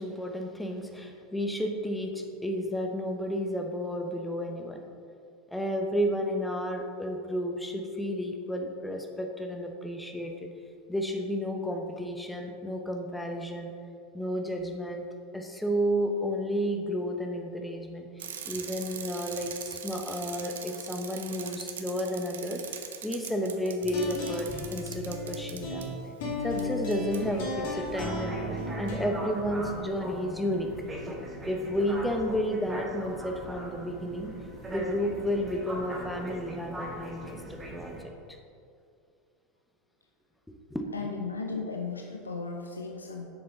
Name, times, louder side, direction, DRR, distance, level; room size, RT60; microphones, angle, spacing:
voice 1, 0.0-4.8 5.5-10.3 10.9-13.7 14.1-15.0 15.3-25.9 26.4-30.7 31.5-34.3 34.7-37.9 40.5-40.9, equal, 5° left, 3 dB, 1.0 m, -32 dB
Bicycle, 18.2-25.9 26.6-26.7 26.9-27.2, right 8 dB, 70° right, 0.6 m, -41 dB
sound 1, 23.8-29.1, left 2 dB, 60° left, 2.0 m, -35 dB
sound 2, 27.1-38.0, right 1 dB, 15° right, 1.7 m, -40 dB
voice 2, 40.9-43.3, left 4 dB, 80° left, 2 dB, 0.6 m, -35 dB
8.0 x 6.7 x 4.1 m, 2.4 s
figure-of-eight pair, 80°, 0 cm